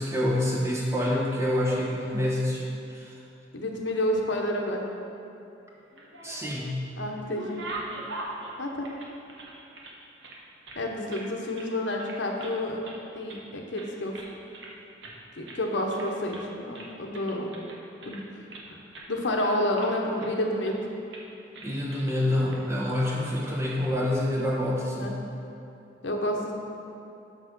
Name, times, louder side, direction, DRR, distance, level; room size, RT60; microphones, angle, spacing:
voice 1, 0.0-3.1 6.2-6.8 21.6-25.1, left 1 dB, 15° right, -4 dB, 1.1 m, -27 dB
voice 2, 3.5-4.8 7.0-7.6 8.6-8.9 10.8-12.8 13.1-14.2 15.3-17.5 18.0-18.2 18.7-18.8 19.1-20.8 22.4-22.5 25.0-25.2 26.0-26.5, left 1 dB, 85° left, 1 dB, 0.9 m, -29 dB
sound 1, 5.8-6.7 7.0-10.0 10.2-11.3 11.6-11.7 12.0-12.6 12.8-13.5 13.8-14.7 15.0-15.2 15.5-15.6 15.9-16.5 16.7-18.7 18.9-19.1 19.4-20.3 20.6-20.8 21.1-21.3 21.5-22.2 22.5-22.6 23.6-23.9, right 2 dB, 80° right, 1.1 m, -42 dB
6.5 x 5.7 x 6.1 m, 2.7 s
head